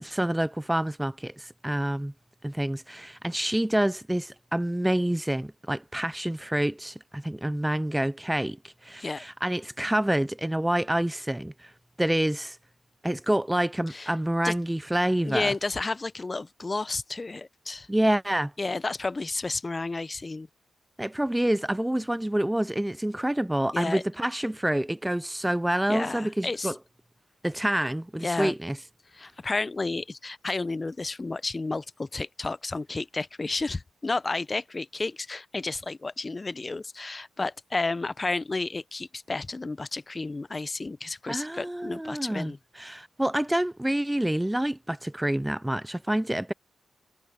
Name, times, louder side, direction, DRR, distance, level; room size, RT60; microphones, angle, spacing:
voice 1, 0.0-2.1 2.4-11.7 12.0-12.6 13.0-15.5 17.9-18.5 21.0-26.7 27.4-28.8 41.3-46.5, right 1 dB, 10° right, 0.4 m, -27 dB
voice 2, 15.2-17.9 18.6-20.5 23.7-24.0 25.9-26.7 28.2-28.5 29.1-42.6, left 3 dB, 30° left, 0.7 m, -31 dB
cardioid pair, 65°, 0 cm